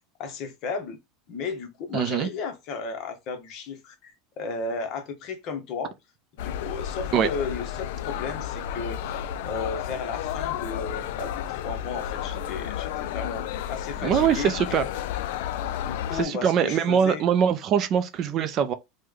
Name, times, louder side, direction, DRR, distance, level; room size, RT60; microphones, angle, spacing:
voice 1, 0.2-1.0 1.3-5.9 6.3-14.5 15.8-17.2, left 5 dB, 45° left, 0.8 m, -34 dB
voice 2, 1.9-2.3 7.1-7.3 14.0-14.9 16.1-18.7, right 8 dB, 35° right, 0.4 m, -23 dB
sound 1, 6.4-16.2, left 10 dB, 70° left, 0.3 m, -32 dB
3.1 x 2.1 x 3.5 m
supercardioid pair, 150°, 0 cm